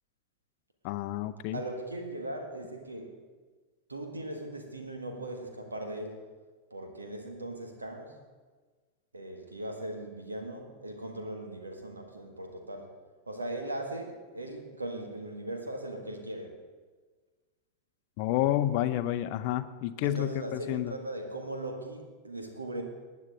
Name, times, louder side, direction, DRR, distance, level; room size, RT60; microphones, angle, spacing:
voice 1, 0.8-1.6 18.2-20.9, left 13 dB, 45° left, 11 dB, 0.6 m, -30 dB
voice 2, 1.5-3.2 3.9-6.3 6.7-8.2 9.1-12.9 13.3-16.5 20.0-22.8, right 1 dB, 80° right, 4 dB, 1.7 m, -39 dB
19.0 x 9.3 x 3.7 m, 1.4 s
figure-of-eight pair, 90°, 0 cm